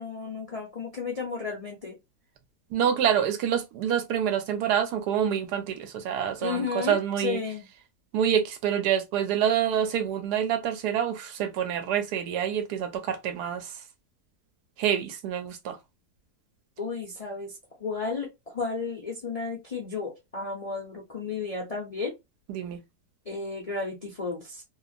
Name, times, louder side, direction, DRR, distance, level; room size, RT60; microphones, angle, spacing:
voice 1, 0.0-1.9 6.4-7.7 16.8-17.5 17.8-22.1 23.3-24.6, left 4 dB, 55° left, 0.4 m, -33 dB
voice 2, 2.7-7.4 8.1-13.7 14.8-15.8 22.5-22.8, right 9 dB, 90° right, 1.2 m, -27 dB
2.8 x 2.4 x 2.4 m
omnidirectional pair, 1.7 m